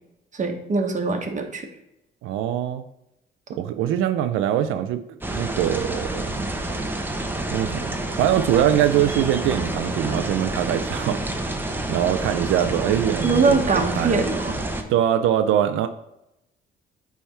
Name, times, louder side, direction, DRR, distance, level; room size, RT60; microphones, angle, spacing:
voice 1, 0.3-1.7 13.2-14.6, right 4 dB, 40° right, 4 dB, 1.2 m, -22 dB
voice 2, 2.2-2.8 3.5-5.0 5.3-6.4 7.5-7.9 8.2-11.5 11.9-14.2 14.9-15.9, right 10 dB, 90° right, 9 dB, 0.4 m, -23 dB
sound 1, 5.2-14.8, right 2 dB, 10° right, 0.9 m, -28 dB
8.7 x 3.5 x 4.4 m, 0.87 s
cardioid pair, 90°, 20 cm